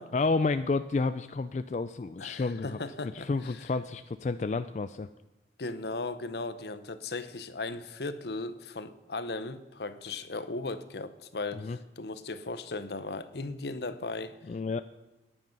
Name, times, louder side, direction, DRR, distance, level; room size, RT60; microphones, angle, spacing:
voice 1, 0.1-2.8 3.1-5.1 11.6-11.8 14.5-14.8, left 3 dB, 40° left, 11 dB, 0.3 m, -30 dB
voice 2, 2.2-3.7 5.6-14.4, left 3 dB, 70° left, 12 dB, 0.8 m, -37 dB
14.5 x 10.0 x 5.3 m, 1.0 s
head